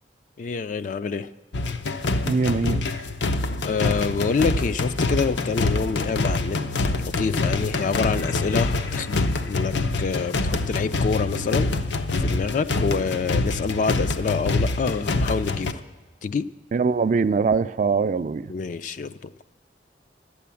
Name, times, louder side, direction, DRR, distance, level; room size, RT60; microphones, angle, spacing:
voice 1, 0.4-1.3 3.6-9.7 10.0-11.7 12.2-15.8 16.2-16.5 18.5-19.5, left 5 dB, 45° left, 11 dB, 0.3 m, -27 dB
sound 1, 1.5-15.7, left 2 dB, 85° left, 0.6 m, -25 dB
voice 2, 2.2-2.9 16.7-18.5, right 5 dB, 45° right, 14 dB, 0.3 m, -22 dB
12.0 x 8.5 x 7.0 m, 1.3 s
head